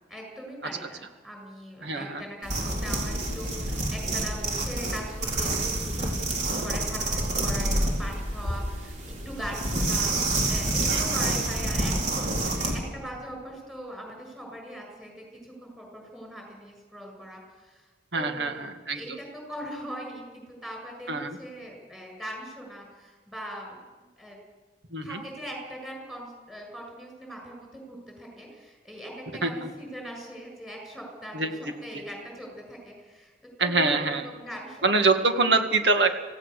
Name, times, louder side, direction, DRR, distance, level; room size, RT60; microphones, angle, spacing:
voice 1, 0.1-2.5 2.8-17.9 18.1-24.4 25.0-33.3 33.6-35.1, equal, ahead, 1 dB, 7.4 m, -41 dB
voice 2, 1.8-2.2 10.8-11.0 18.1-19.2 21.1-21.4 24.9-25.2 29.4-29.7 31.3-31.5 31.9-32.0 33.6-34.3 34.8-36.2, right 3 dB, 75° right, 6 dB, 2.1 m, -25 dB
sound 1, 2.4-12.8, right 2 dB, 45° right, 4.3 m, -28 dB
26.5 x 17.0 x 6.7 m, 1.3 s
head